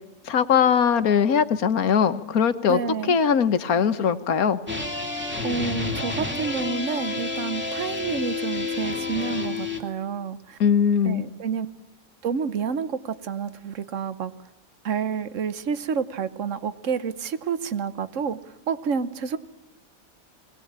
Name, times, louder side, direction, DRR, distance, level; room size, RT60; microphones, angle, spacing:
voice 1, 0.3-2.8 3.1-4.6 10.6-11.2, left 7 dB, 80° left, 12 dB, 1.6 m, -20 dB
voice 2, 2.7-3.2 5.4-10.6 11.0-11.7 12.2-14.3 14.8-18.4 18.7-19.4, right 6 dB, 60° right, 14 dB, 1.4 m, -29 dB
sound 1, 4.7-9.8, left 3 dB, 5° right, 2.5 m, -29 dB
21.5 x 19.0 x 8.7 m, 1.1 s
omnidirectional pair, 1.5 m